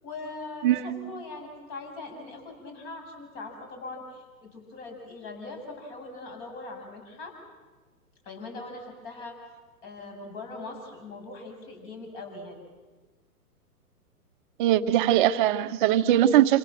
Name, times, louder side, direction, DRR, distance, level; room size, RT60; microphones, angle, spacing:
voice 1, 0.0-7.3 8.2-9.4 9.8-12.6, left 3 dB, 35° left, 4 dB, 7.8 m, -41 dB
voice 2, 14.6-16.6, right 12 dB, 30° right, 10 dB, 1.1 m, -21 dB
28.0 x 27.5 x 7.6 m, 1.3 s
figure-of-eight pair, 125°, 46 cm